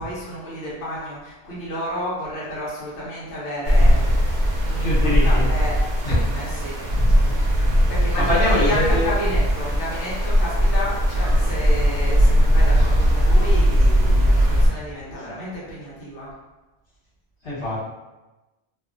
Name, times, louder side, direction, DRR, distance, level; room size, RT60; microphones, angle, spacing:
voice 1, 0.0-4.0 4.6-5.7 6.2-6.8 7.9-16.3, equal, 85° left, -7 dB, 1.2 m, -31 dB
sound 1, 3.6-14.7, equal, 50° right, 0.6 m, -18 dB
voice 2, 4.8-5.5 6.0-6.2 8.2-9.1 15.1-15.2 17.4-17.8, left 1 dB, 65° left, -8 dB, 1.3 m, -23 dB
2.8 x 2.1 x 2.4 m, 1.1 s
omnidirectional pair, 1.2 m